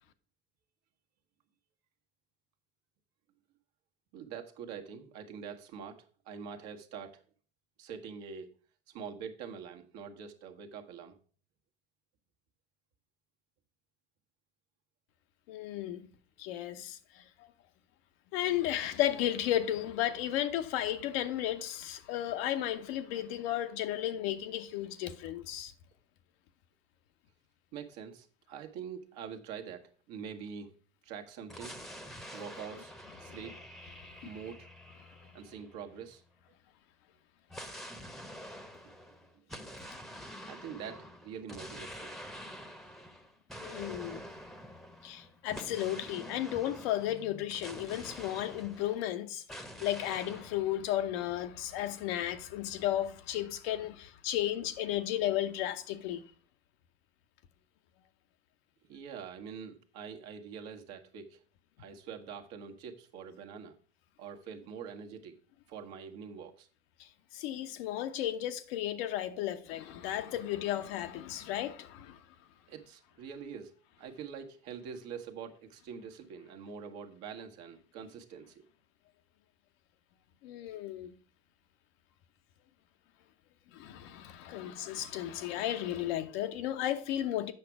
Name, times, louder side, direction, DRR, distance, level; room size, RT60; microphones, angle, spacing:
voice 1, 4.1-7.2 7.8-8.5 8.9-11.2 27.7-30.7 31.0-31.8 32.3-32.9 33.2-33.6 34.2-34.7 35.3-36.2 40.5-42.1 58.9-61.4 61.8-63.8 64.2-65.3 65.7-66.7 72.7-78.6, right 7 dB, 60° right, 1.3 m, -45 dB
voice 2, 15.5-16.1 16.4-17.5 18.3-25.7 33.2-33.4 34.2-34.3 43.6-44.2 45.0-56.2 67.0-72.2 80.4-81.1 83.7-87.5, left 12 dB, 65° left, 0.9 m, -34 dB
sound 1, 31.5-36.2 37.5-49.1 49.5-50.6, equal, ahead, 0.9 m, -47 dB
7.6 x 6.0 x 4.7 m
hypercardioid pair, 85°, 32 cm